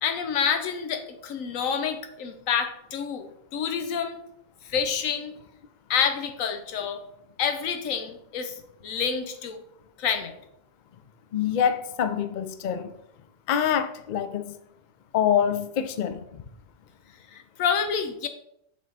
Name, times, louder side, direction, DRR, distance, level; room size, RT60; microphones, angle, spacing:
voice 1, 0.0-4.2 4.6-5.3 5.9-7.0 7.4-8.5 8.8-9.6 10.0-10.3 17.3-18.3, left 7 dB, 90° left, 1.1 m, -28 dB
voice 2, 11.3-12.9 13.5-14.5 15.1-16.2, left 8 dB, 60° left, 0.4 m, -25 dB
6.4 x 3.6 x 4.0 m
omnidirectional pair, 1.3 m